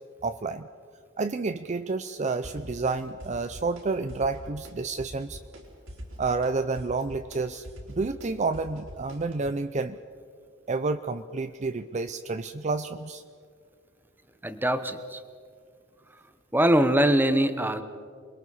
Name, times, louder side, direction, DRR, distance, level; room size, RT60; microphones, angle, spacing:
voice 1, 0.2-0.7 1.2-5.4 6.2-10.0 10.7-13.2, right 3 dB, 35° right, 10 dB, 0.6 m, -30 dB
sound 1, 2.4-2.9 3.2-3.8 4.1-4.7 5.0-5.6 5.9-9.5, equal, 80° right, 4.9 m, -43 dB
voice 2, 14.4-15.2 16.5-17.8, right 1 dB, 10° right, 10 dB, 1.1 m, -22 dB
28.0 x 21.5 x 5.6 m, 2.1 s
head